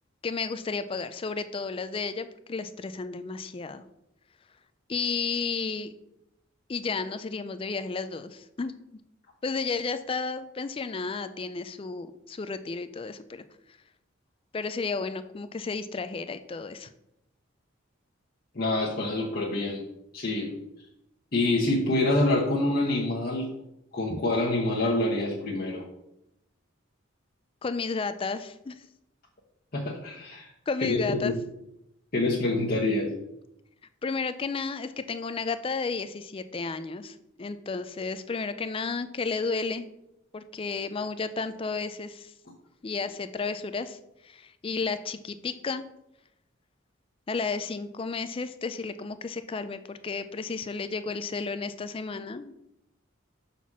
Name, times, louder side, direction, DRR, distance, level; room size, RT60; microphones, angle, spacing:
voice 1, 0.2-3.8 4.9-5.9 6.7-8.7 9.4-13.4 14.5-16.9 24.1-24.2 27.6-28.8 30.7-31.3 34.0-39.9 40.3-42.3 42.8-44.0 44.2-45.8 47.3-52.5, left 4 dB, 25° left, 12 dB, 0.4 m, -32 dB
voice 2, 18.5-19.8 20.1-20.5 21.3-23.5 23.9-25.8 29.7-30.5 30.8-31.4 32.1-33.1, left 2 dB, 50° left, -4 dB, 1.1 m, -26 dB
5.9 x 4.0 x 6.1 m, 0.85 s
head